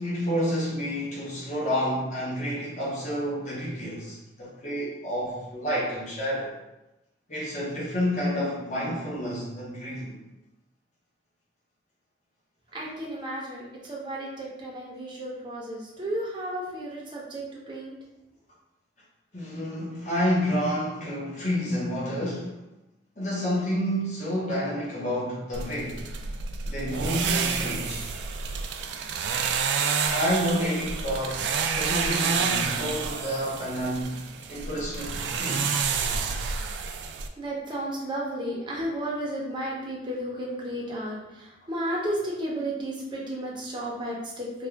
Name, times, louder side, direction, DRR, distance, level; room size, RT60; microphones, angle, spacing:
voice 1, 0.0-6.5 7.3-10.1 19.3-22.5 23.2-26.0 26.6-28.1 30.1-35.7, equal, 40° left, -6 dB, 1.0 m, -29 dB
voice 2, 12.7-17.9 36.4-36.5 37.4-44.7, right 1 dB, 25° right, -4 dB, 0.7 m, -33 dB
sound 1, 25.5-37.3, right 5 dB, 70° right, 0.3 m, -29 dB
3.5 x 2.4 x 3.3 m, 0.97 s
head